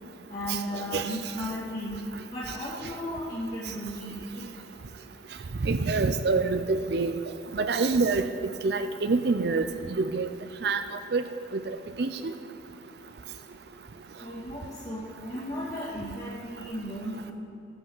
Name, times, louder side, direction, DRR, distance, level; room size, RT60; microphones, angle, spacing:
voice 1, 0.3-2.0 2.3-4.6 14.2-17.3, equal, 40° left, -11 dB, 2.3 m, -35 dB
voice 2, 5.6-7.1 7.5-8.2 8.6-9.6 9.9-10.3 10.6-10.8 11.1-11.2 11.7-12.1, right 4 dB, 60° right, 9 dB, 0.5 m, -26 dB
14.0 x 5.4 x 7.2 m, 2.7 s
head